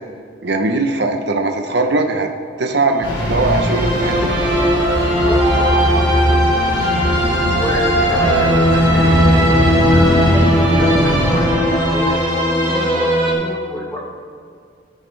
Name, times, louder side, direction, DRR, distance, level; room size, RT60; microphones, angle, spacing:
voice 1, 0.4-2.3 2.6-4.4, right 2 dB, 60° right, 5 dB, 0.9 m, -19 dB
sound 1, 2.9-13.3, equal, 20° right, 3.1 m, -17 dB
sound 2, 3.0-11.5, equal, 70° left, 3.2 m, -19 dB
voice 2, 5.1-6.1 7.5-9.4 9.7-10.3 10.7-12.2 12.6-14.0, left 1 dB, 15° left, -2 dB, 1.3 m, -29 dB
16.0 x 9.4 x 3.4 m, 2.2 s
head